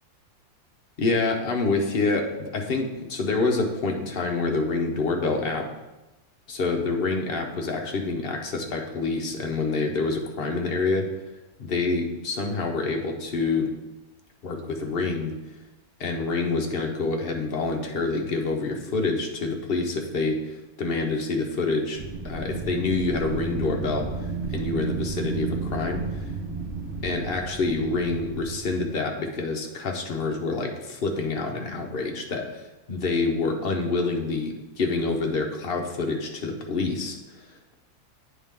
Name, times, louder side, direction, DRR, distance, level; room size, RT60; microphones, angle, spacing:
voice 1, 1.0-5.7 6.5-11.1 11.6-13.7 14.4-15.3 16.0-26.3 27.0-37.5, left 3 dB, 50° left, 2 dB, 0.8 m, -27 dB
Wind, 21.9-28.9, right 4 dB, 45° right, 1.0 m, -32 dB
8.8 x 3.7 x 3.6 m, 1.1 s
omnidirectional pair, 1.6 m